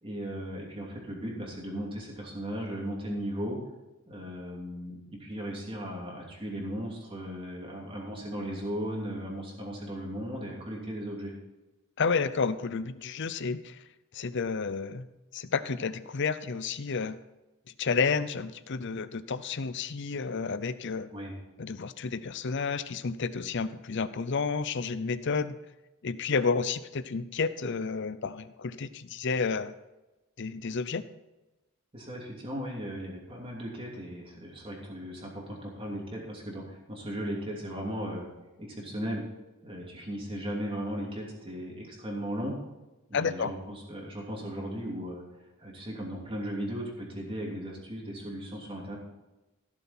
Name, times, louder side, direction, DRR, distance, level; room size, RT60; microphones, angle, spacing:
voice 1, 0.0-3.6 4.1-11.3 21.1-21.3 31.9-38.3 38.6-39.2 39.6-42.6 43.1-45.2 45.6-49.0, equal, 25° right, -2 dB, 3.0 m, -37 dB
voice 2, 12.0-13.8 14.1-15.1 15.3-17.2 17.8-21.1 21.6-25.6 26.0-29.8 30.4-31.0 43.1-43.5, left 5 dB, 55° left, 14 dB, 0.6 m, -31 dB
16.0 x 7.1 x 4.4 m, 1.0 s
head